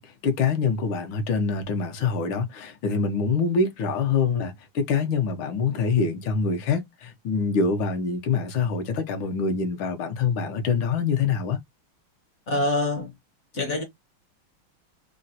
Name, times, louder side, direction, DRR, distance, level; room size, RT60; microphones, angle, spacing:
voice 1, 0.0-11.6, left 5 dB, 75° left, 1.4 m, -25 dB
voice 2, 12.5-13.1 13.5-13.8, left 2 dB, 55° left, 0.8 m, -25 dB
3.8 x 2.1 x 2.6 m
omnidirectional pair, 2.3 m